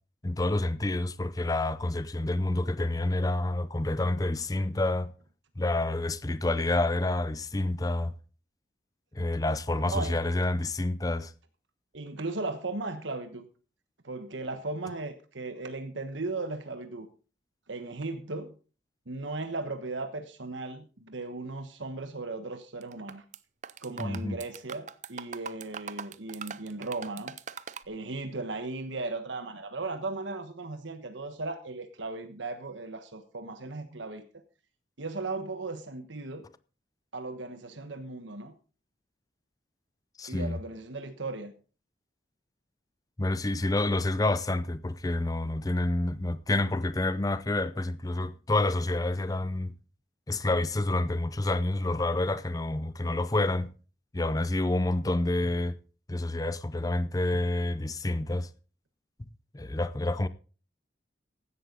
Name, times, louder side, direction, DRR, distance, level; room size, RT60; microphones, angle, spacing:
voice 1, 0.2-5.1 5.6-8.1 9.1-11.3 24.0-24.4 40.2-40.6 43.2-49.7 50.3-53.7 54.1-55.7 56.1-58.5 59.5-60.3, left 2 dB, 20° left, 0.5 m, -28 dB
voice 2, 9.9-10.2 11.9-13.5 14.0-17.1 17.7-18.5 19.1-23.2 23.8-27.3 27.9-34.4 35.0-36.4 37.1-38.5 40.3-41.5, right 3 dB, 75° right, 1.3 m, -36 dB
sound 1, 22.8-23.4 23.6-27.9, right 6 dB, 40° right, 0.5 m, -41 dB
15.5 x 11.0 x 4.0 m
head